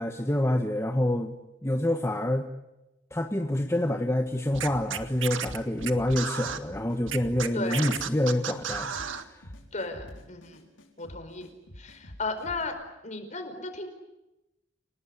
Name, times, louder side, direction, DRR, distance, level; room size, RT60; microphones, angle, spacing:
voice 1, 0.0-1.4 1.6-2.5 3.1-8.9 9.3-9.4, left 1 dB, 15° left, 4 dB, 1.3 m, -27 dB
Scratching (performance technique), 4.5-6.6 7.1-9.2, right 7 dB, 85° right, 1.8 m, -33 dB
sound 1, 4.7-12.6, equal, 80° left, 5.4 m, -47 dB
voice 2, 7.5-7.9 9.7-10.6 11.0-11.5 11.8-12.8 13.0-13.9, left 3 dB, 40° left, 7 dB, 4.8 m, -35 dB
30.0 x 18.5 x 10.0 m, 0.96 s
head